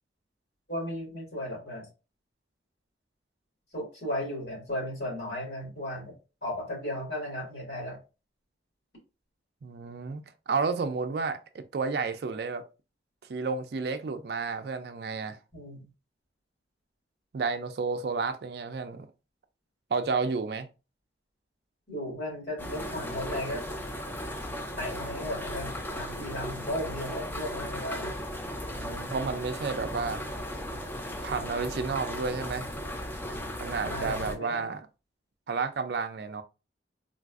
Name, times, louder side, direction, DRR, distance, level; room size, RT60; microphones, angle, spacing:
voice 1, 0.7-1.9 3.7-6.1 6.4-8.0 15.5-15.9 21.9-23.6 24.8-28.1 33.8-34.7, left 1 dB, 70° left, 1.9 m, -35 dB
voice 2, 9.6-10.2 10.5-12.6 13.3-15.4 17.3-19.1 19.9-20.7 28.7-30.2 31.2-32.7 33.6-34.8 35.5-36.4, right 4 dB, 60° right, 0.4 m, -31 dB
sound 1, 22.6-34.4, equal, 10° left, 0.4 m, -36 dB
3.8 x 2.5 x 2.4 m
head